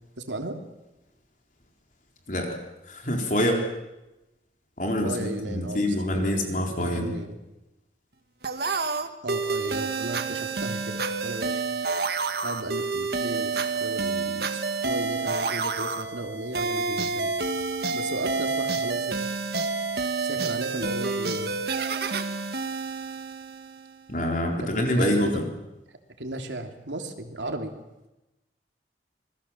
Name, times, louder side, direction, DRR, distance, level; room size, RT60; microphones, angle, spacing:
voice 1, 0.2-0.6 5.0-7.3 9.2-11.6 12.4-14.5 14.8-17.3 17.9-19.2 20.2-21.5 24.6-25.5 26.2-27.7, right 1 dB, 90° right, 5 dB, 3.0 m, -35 dB
voice 2, 2.3-2.6 2.9-3.7 4.8-7.1 24.1-25.4, equal, 45° left, 2 dB, 4.1 m, -26 dB
sound 1, 8.4-23.9, right 4 dB, 60° right, 1.6 m, -29 dB
27.5 x 21.0 x 7.3 m, 0.97 s
head